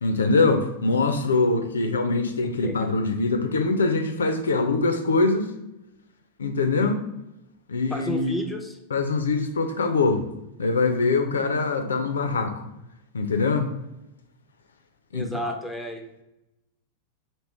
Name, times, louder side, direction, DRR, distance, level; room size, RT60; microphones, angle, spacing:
voice 1, 0.0-5.5 6.4-7.0 7.7-8.3 8.9-10.2 10.6-12.6 13.1-13.7 15.1-15.3, left 3 dB, 70° left, 7 dB, 0.4 m, -23 dB
voice 2, 7.9-8.8 15.1-16.2, equal, ahead, 3 dB, 0.6 m, -32 dB
3.0 x 3.0 x 4.3 m, 0.91 s
figure-of-eight pair, 90°, 0 cm